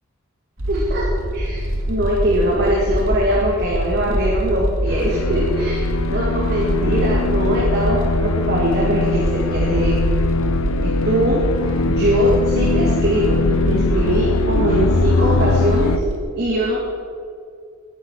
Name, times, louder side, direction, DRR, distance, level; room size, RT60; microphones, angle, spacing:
sound 1, 0.6-16.2, right 1 dB, 75° right, 2.1 m, -24 dB
voice 1, 0.7-1.0 1.3-1.6 1.9-9.9 10.8-11.4 11.9-16.0 16.4-16.8, equal, 50° right, -4 dB, 2.4 m, -21 dB
sound 2, 4.9-16.0, left 4 dB, 75° left, 0.6 m, -22 dB
19.0 x 11.0 x 4.7 m, 2.2 s
head